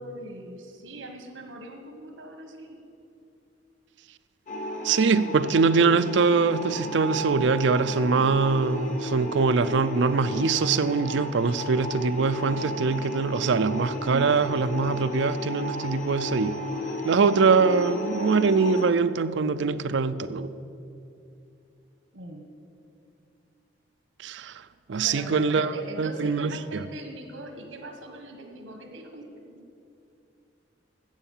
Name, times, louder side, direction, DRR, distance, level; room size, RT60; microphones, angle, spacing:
voice 1, 0.0-2.8 22.1-22.4 25.0-29.6, right 1 dB, 90° right, 4 dB, 1.3 m, -41 dB
sound 1, 4.5-18.9, left 1 dB, 40° left, 1.2 m, -34 dB
voice 2, 4.8-16.5 17.0-20.5 24.2-25.7 26.0-26.8, right 4 dB, 65° right, 13 dB, 0.4 m, -23 dB
12.5 x 8.0 x 7.2 m, 2.6 s
head